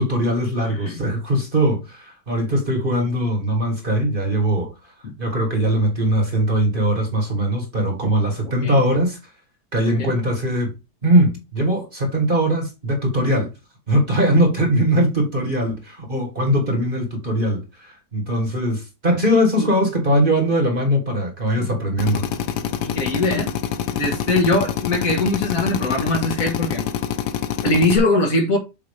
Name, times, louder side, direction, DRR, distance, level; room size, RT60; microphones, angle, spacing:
voice 1, 0.0-4.7 5.2-9.2 9.7-10.7 11.0-13.5 13.9-22.3, equal, 30° right, 1.8 m, -20 dB
voice 2, 0.7-1.0 8.6-8.8 10.0-10.1 19.6-19.7 21.6-21.7 22.8-23.5 23.9-26.9 27.6-28.6, left 2 dB, 55° left, 2.0 m, -21 dB
Drill, 22.0-28.0, left 9 dB, 80° left, 1.4 m, -26 dB
7.5 x 2.9 x 5.1 m
omnidirectional pair, 1.8 m